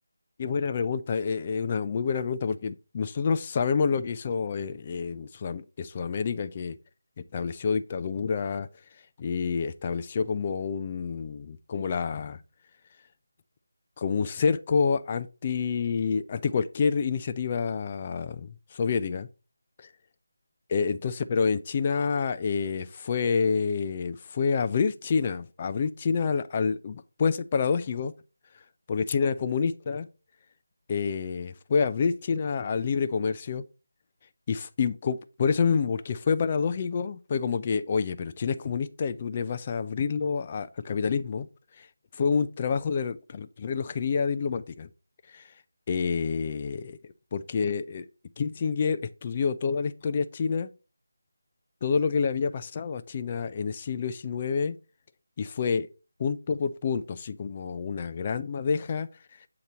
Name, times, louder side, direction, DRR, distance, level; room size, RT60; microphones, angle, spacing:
voice 1, 0.4-6.7 7.3-8.7 9.2-12.4 14.0-19.3 19.8-19.9 20.7-28.1 28.9-30.1 30.9-33.6 34.5-41.5 41.8-41.9 42.2-44.9 45.3-45.5 45.9-47.0 47.3-48.1 48.4-50.7 51.8-54.8 55.4-55.9 56.2-59.1, left 5 dB, 30° left, 0.4 m, -28 dB
7.9 x 2.9 x 5.0 m
figure-of-eight pair, 165°, 0 cm